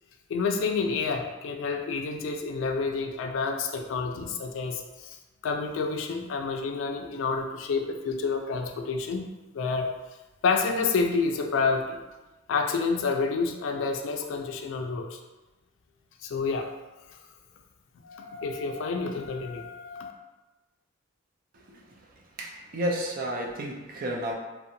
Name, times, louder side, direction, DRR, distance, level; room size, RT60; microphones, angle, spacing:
voice 1, 0.3-5.2 5.4-9.3 9.5-9.9 10.4-12.0 12.5-15.2 16.2-16.7 18.0-20.1, left 4 dB, 75° left, 3 dB, 0.3 m, -29 dB
voice 2, 21.5-22.0 22.4-24.3, right 1 dB, 45° right, 0 dB, 0.4 m, -32 dB
2.6 x 2.1 x 2.6 m, 1.1 s
head